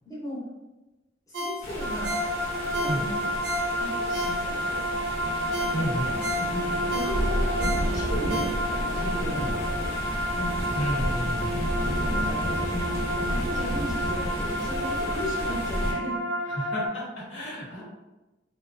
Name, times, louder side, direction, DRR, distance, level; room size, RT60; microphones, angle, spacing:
voice 1, 0.1-0.4 1.3-2.1 2.6-3.4 3.8-4.8 5.8-5.9 6.3-9.5 9.8-9.9 10.3-10.6 11.5-11.7 12.1-16.2, left 1 dB, 20° left, -8 dB, 0.7 m, -36 dB
Ringtone, 1.3-4.8 5.2-5.3 5.5-9.0 9.4-9.5, left 1 dB, 65° right, 0.4 m, -34 dB
sound 1, 1.6-15.9, equal, 55° left, 1.1 m, -31 dB
sound 2, 1.8-16.9, equal, 35° right, 0.7 m, -30 dB
voice 2, 5.7-6.1 9.4-9.5 10.8-11.5 16.5-17.8, equal, 90° left, -7 dB, 1.0 m, -31 dB
2.4 x 2.1 x 2.5 m, 1.1 s
head